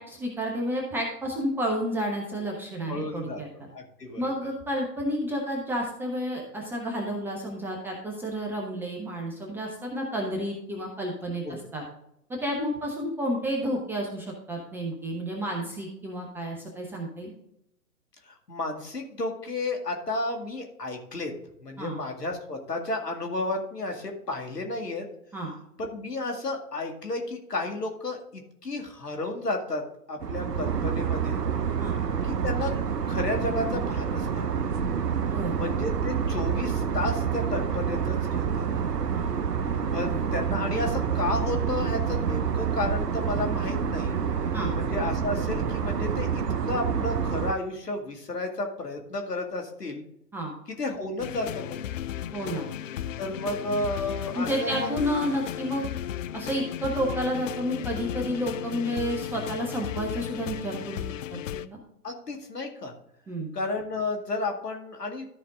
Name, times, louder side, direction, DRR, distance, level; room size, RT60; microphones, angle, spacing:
voice 1, 0.0-3.7 4.2-11.8 12.3-17.3 21.8-22.0 25.3-25.5 31.8-32.0 35.2-35.6 39.1-39.3 40.0-40.2 44.5-44.7 50.3-50.5 52.3-52.7 54.3-55.9 56.3-61.0 61.3-61.8 63.3-63.5, equal, 5° right, -1 dB, 0.5 m, -31 dB
voice 2, 2.9-3.4 3.7-4.2 11.4-11.6 18.3-21.3 21.6-25.1 25.8-29.8 30.1-31.4 32.2-32.8 33.1-34.8 35.5-38.7 39.9-44.2 44.7-50.0 50.8-51.8 53.2-54.9 62.0-62.9 63.5-65.3, left 2 dB, 80° left, 3 dB, 2.2 m, -32 dB
sound 1, 30.2-47.5, right 7 dB, 85° right, 0.8 m, -28 dB
sound 2, 51.2-61.7, left 11 dB, 55° left, 0.5 m, -35 dB
13.0 x 5.1 x 3.6 m, 0.77 s
figure-of-eight pair, 115°, 47 cm